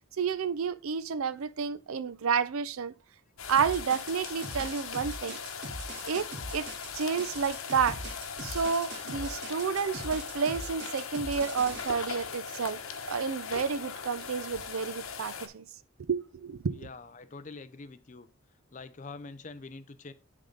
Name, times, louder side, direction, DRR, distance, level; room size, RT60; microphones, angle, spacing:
voice 1, 0.2-2.9 3.5-5.4 6.0-6.7 6.9-8.0 8.4-12.8 13.1-15.6 16.1-16.9, right 6 dB, 85° right, 0.5 m, -30 dB
sound 1, 3.4-15.5, left 6 dB, 85° left, 1.0 m, -40 dB
sound 2, 3.6-11.8, right 1 dB, 50° right, 1.5 m, -41 dB
voice 2, 16.7-18.3 18.7-20.1, left 3 dB, 35° left, 0.5 m, -45 dB
10.5 x 3.7 x 3.9 m
head